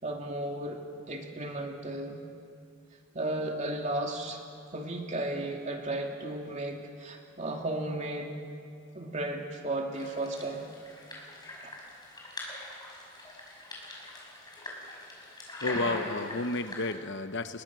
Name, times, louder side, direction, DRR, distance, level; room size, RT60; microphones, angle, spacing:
voice 1, 0.0-2.2 3.1-4.4 4.7-8.4 8.9-10.7 11.6-11.7, right 1 dB, 35° right, 1 dB, 2.7 m, -34 dB
sound 1, 9.9-16.9, left 1 dB, 20° left, 5.6 m, -41 dB
voice 2, 15.6-17.6, left 2 dB, 65° left, 10 dB, 0.9 m, -32 dB
30.0 x 21.5 x 6.2 m, 2.3 s
head